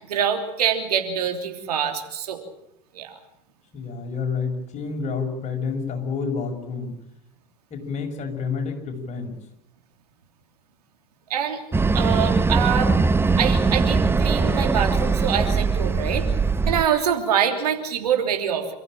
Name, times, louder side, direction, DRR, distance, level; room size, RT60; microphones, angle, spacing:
voice 1, 0.1-2.4 2.9-3.2 11.3-11.6 11.9-12.9 13.4-16.3 16.7-18.7, right 8 dB, 75° right, 5 dB, 3.3 m, -25 dB
voice 2, 3.7-7.0 7.7-9.3, left 5 dB, 35° left, 3 dB, 6.2 m, -29 dB
sound 1, 11.7-16.8, right 4 dB, 10° right, 0.8 m, -21 dB
28.5 x 14.5 x 8.9 m, 0.84 s
figure-of-eight pair, 75°, 20 cm